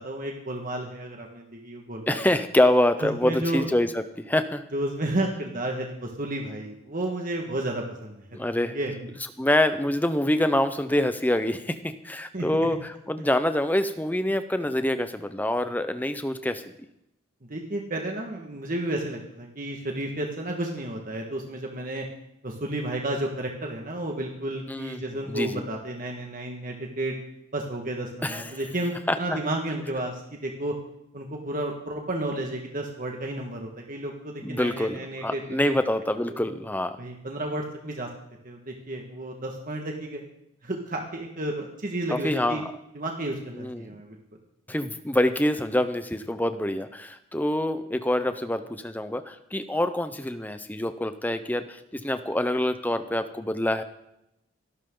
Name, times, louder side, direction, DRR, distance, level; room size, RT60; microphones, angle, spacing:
voice 1, 0.0-2.3 3.0-3.7 4.7-8.2 8.6-8.9 12.3-12.7 17.5-22.1 22.4-27.1 27.5-30.8 31.1-35.7 36.3-36.5 37.0-38.1 38.4-40.2 40.6-42.6 42.9-44.2, right 1 dB, 40° right, 1 dB, 1.8 m, -32 dB
voice 2, 2.1-4.6 8.3-8.8 9.4-16.7 24.7-25.0 25.3-25.6 28.2-28.5 29.1-29.4 34.4-37.0 42.1-42.7 43.6-43.9 44.7-53.8, left 1 dB, 10° left, 10 dB, 0.8 m, -26 dB
27.0 x 12.5 x 3.9 m, 0.83 s
head